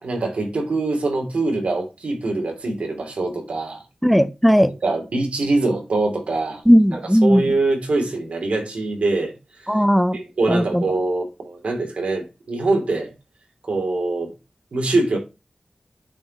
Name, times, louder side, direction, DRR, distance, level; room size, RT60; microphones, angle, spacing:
voice 1, 0.0-3.8 4.8-6.6 6.9-9.3 9.6-9.7 10.1-13.1 13.7-14.3 14.7-15.2, right 2 dB, 85° right, 2.7 m, -23 dB
voice 2, 4.0-4.7 6.7-7.4 9.7-10.2 10.5-10.8, equal, ahead, 0.6 m, -16 dB
8.9 x 4.6 x 4.0 m
wide cardioid pair, 90°, 2 cm